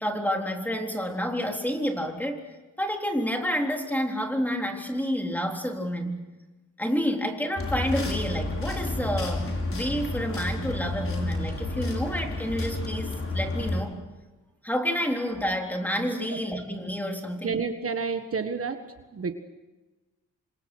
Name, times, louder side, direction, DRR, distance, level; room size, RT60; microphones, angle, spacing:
voice 1, 0.0-2.4 2.8-6.2 6.8-14.0 14.6-17.6, equal, 5° left, 2 dB, 3.8 m, -29 dB
sound 1, 7.6-13.8, left 2 dB, 45° left, 5.6 m, -30 dB
voice 2, 17.4-18.8 19.1-19.3, right 5 dB, 45° right, 7 dB, 1.6 m, -29 dB
27.5 x 26.0 x 6.3 m, 1.2 s
wide cardioid pair, 120°, 31 cm